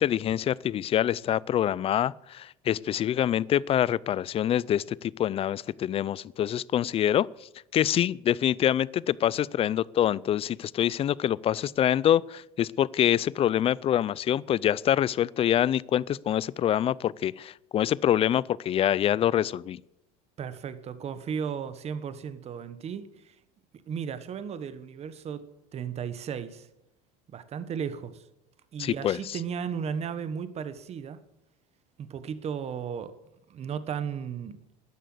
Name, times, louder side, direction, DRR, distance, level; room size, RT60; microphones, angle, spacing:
voice 1, 0.0-7.3 7.7-19.8 28.8-29.4, left 11 dB, 35° left, 23 dB, 0.5 m, -25 dB
voice 2, 20.4-23.4 23.9-26.7 27.3-28.2 28.7-31.2 32.0-33.1 33.5-34.6, right 7 dB, 35° right, 12 dB, 1.3 m, -35 dB
13.5 x 10.5 x 7.9 m, 0.83 s
supercardioid pair, 120°, 18 cm